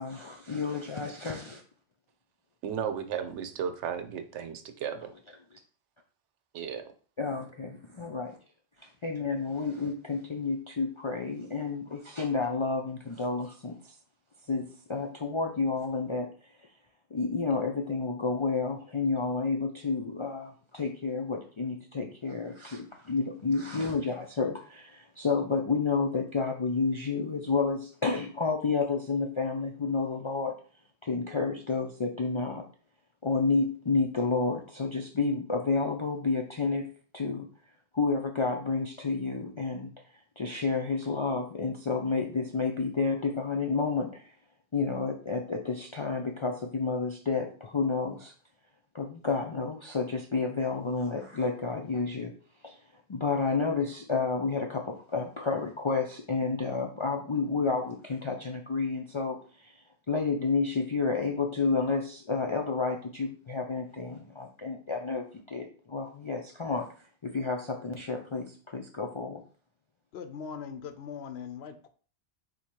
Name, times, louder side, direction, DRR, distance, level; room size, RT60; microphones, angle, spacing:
voice 1, 0.0-1.6 7.2-8.4 8.8-13.9 14.5-16.3 17.1-30.5 31.0-32.6 33.2-36.9 37.1-37.5 37.9-39.9 40.4-44.3 44.7-48.3 48.9-52.3 52.6-52.8 53.1-59.8 60.1-66.9 67.2-69.4, left 4 dB, 50° left, 2 dB, 0.3 m, -30 dB
voice 2, 2.6-5.1 6.5-6.9, right 7 dB, 85° right, 9 dB, 0.9 m, -34 dB
voice 3, 70.1-71.9, left 7 dB, 70° left, 9 dB, 0.8 m, -40 dB
4.0 x 2.8 x 4.4 m, 0.40 s
omnidirectional pair, 1.2 m